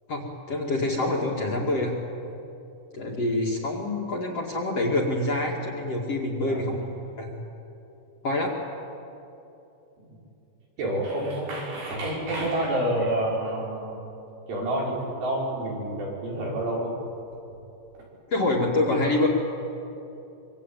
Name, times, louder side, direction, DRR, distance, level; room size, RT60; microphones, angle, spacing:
voice 1, 0.1-1.9 3.0-6.8 7.2-7.3 8.2-8.6 18.3-19.3, left 2 dB, 40° left, -2 dB, 2.7 m, -26 dB
voice 2, 6.5-6.8 10.0-10.2 10.8-14.0 14.5-16.9, right 1 dB, 80° right, -4 dB, 8.4 m, -28 dB
25.0 x 24.5 x 9.2 m, 2.8 s
omnidirectional pair, 5.5 m